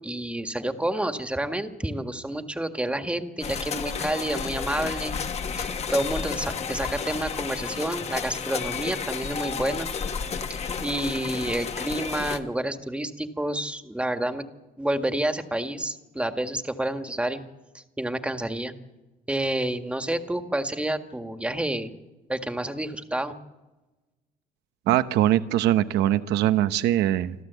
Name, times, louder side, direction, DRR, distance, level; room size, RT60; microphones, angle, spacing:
voice 1, 0.0-5.1 5.6-9.9 10.5-14.4 14.8-17.4 17.7-18.7 19.3-21.9 22.3-23.3, right 1 dB, 5° right, 7 dB, 1.7 m, -29 dB
sound 1, 3.4-12.4, left 6 dB, 40° left, 1.4 m, -32 dB
voice 2, 24.9-27.3, right 13 dB, 85° right, 12 dB, 0.9 m, -22 dB
26.5 x 13.5 x 8.2 m, 1.1 s
cardioid pair, 110°, 17 cm